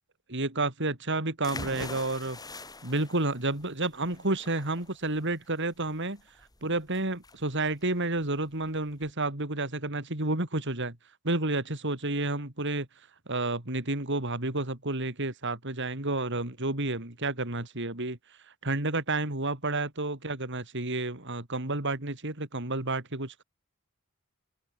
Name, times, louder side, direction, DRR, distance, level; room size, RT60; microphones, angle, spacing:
voice 1, 0.3-2.4 2.8-6.2 6.6-11.0 11.2-12.9 13.3-18.2 18.6-23.4, right 2 dB, 60° right, 4.1 m, -30 dB
sound 1, 1.4-9.1, left 2 dB, 20° left, 6.9 m, -45 dB
open air
head